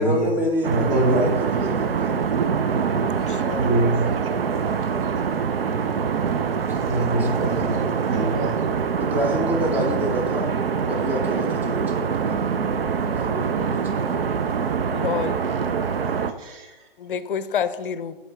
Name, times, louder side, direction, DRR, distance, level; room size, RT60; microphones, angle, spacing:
voice 1, 0.0-2.1 6.7-7.7 9.0-10.5 10.8-12.1 13.2-14.2, equal, 5° right, 0 dB, 0.6 m, -28 dB
sound 1, 0.6-16.3, right 6 dB, 75° right, 0.6 m, -24 dB
voice 2, 0.7-1.3 3.6-4.1 6.9-8.6 16.4-16.7, right 2 dB, 35° right, 0 dB, 1.2 m, -24 dB
voice 3, 3.3-4.0 14.9-15.5 17.0-18.2, left 7 dB, 60° left, 13 dB, 0.5 m, -28 dB
7.1 x 4.3 x 3.3 m, 1.1 s
figure-of-eight pair, 135°, 29 cm